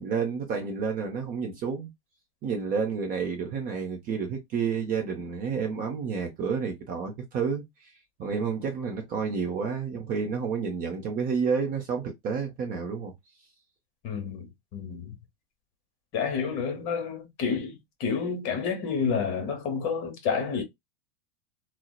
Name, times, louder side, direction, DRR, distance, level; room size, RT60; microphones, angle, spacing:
voice 1, 0.0-1.9 2.4-7.9 8.2-13.1, right 6 dB, 25° right, 0.5 m, -30 dB
voice 2, 14.0-15.2 16.1-20.6, left 6 dB, 40° left, 0.9 m, -30 dB
2.7 x 2.0 x 2.2 m
hypercardioid pair, 130°, 34 cm